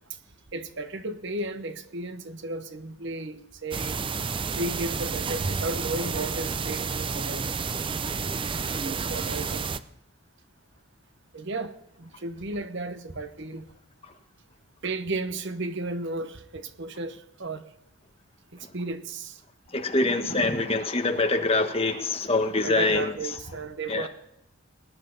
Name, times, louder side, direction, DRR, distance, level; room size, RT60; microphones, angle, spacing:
voice 1, 0.5-4.0 4.5-7.4 8.8-9.7 11.3-13.7 14.8-17.6 18.5-19.4 20.2-20.5 22.6-24.1, right 2 dB, 55° right, 1.0 m, -34 dB
sound 1, 3.7-9.8, right 5 dB, 25° right, 0.4 m, -30 dB
voice 2, 19.7-23.1 23.9-24.1, left 2 dB, 25° left, 1.3 m, -24 dB
20.0 x 10.0 x 4.0 m
head